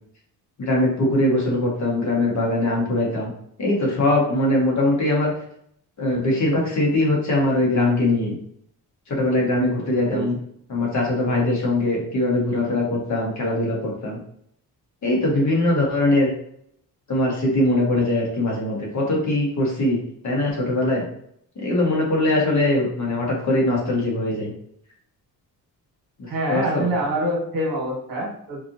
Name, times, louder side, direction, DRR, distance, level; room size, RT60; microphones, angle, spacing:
voice 1, 0.6-3.3 3.6-5.3 6.0-8.4 9.1-10.4 10.7-14.2 15.0-16.3 17.1-20.0 20.2-21.0 21.6-24.5 26.2-26.9, left 1 dB, 50° left, -2 dB, 1.4 m, -21 dB
voice 2, 10.0-10.3 26.3-28.6, right 1 dB, 65° right, -1 dB, 1.5 m, -25 dB
4.5 x 2.9 x 2.7 m, 0.69 s
cardioid pair, 125°, 37 cm